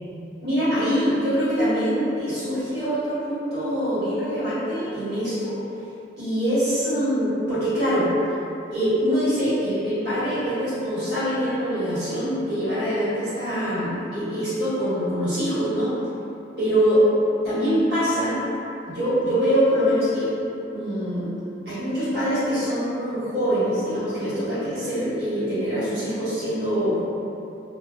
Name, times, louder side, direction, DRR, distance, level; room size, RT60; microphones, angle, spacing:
voice 1, 0.4-5.6 6.2-8.1 8.7-15.9 16.6-17.0 17.4-18.4 18.8-20.3 20.7-21.3 21.6-27.0, equal, 65° right, -14 dB, 1.4 m, -24 dB
2.6 x 2.4 x 2.2 m, 2.9 s
head